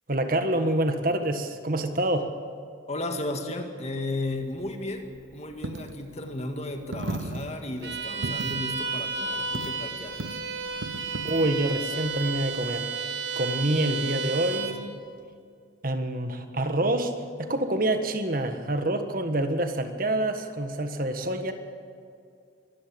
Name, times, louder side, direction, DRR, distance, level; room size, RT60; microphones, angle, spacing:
voice 1, 0.1-2.3 11.2-12.9 13.4-14.9 15.8-17.1 17.4-21.5, right 1 dB, 45° right, 7 dB, 1.5 m, -27 dB
voice 2, 2.9-10.4 14.4-14.7 21.1-21.3, left 2 dB, 35° left, 5 dB, 2.0 m, -34 dB
Coin (dropping), 4.3-12.8, right 2 dB, 80° right, 1.0 m, -39 dB
Bowed string instrument, 7.8-14.8, right 5 dB, 60° right, 1.8 m, -32 dB
24.5 x 14.0 x 8.7 m, 2.3 s
head